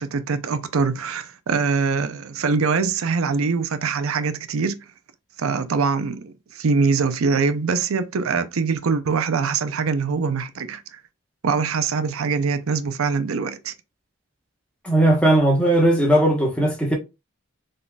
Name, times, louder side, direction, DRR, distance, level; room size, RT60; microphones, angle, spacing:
voice 1, 0.0-4.8 5.4-11.0 11.4-13.7, right 5 dB, 90° right, 0.5 m, -23 dB
voice 2, 14.8-16.9, right 1 dB, 5° left, 1.0 m, -18 dB
3.8 x 3.8 x 2.3 m
head